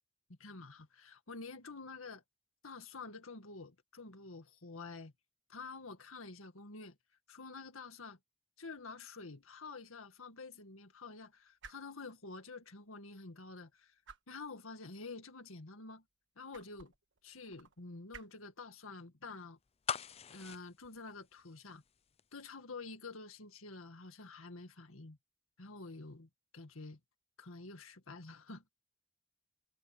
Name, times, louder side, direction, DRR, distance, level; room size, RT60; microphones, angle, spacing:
voice 1, 0.4-2.2 2.6-5.1 5.5-7.0 7.3-8.2 8.6-14.0 14.3-16.0 16.4-16.9 17.2-19.6 20.3-21.8 22.3-25.2 25.6-27.0 27.4-28.6, left 3 dB, 85° left, 2.0 m, -49 dB
sound 1, 8.6-22.2, right 5 dB, 60° right, 1.6 m, -63 dB
sound 2, 19.8-21.9 22.2-22.3, left 7 dB, 30° left, 0.5 m, -41 dB
head